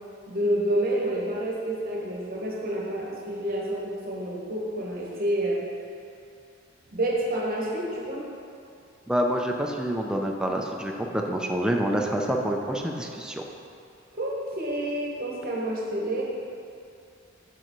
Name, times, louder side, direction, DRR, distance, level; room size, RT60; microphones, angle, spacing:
voice 1, 0.3-5.6 6.9-8.3 14.1-16.2, right 1 dB, 45° right, -3 dB, 1.1 m, -28 dB
voice 2, 9.1-13.4, equal, 5° right, 1 dB, 0.4 m, -27 dB
6.6 x 5.9 x 3.1 m, 2.5 s
head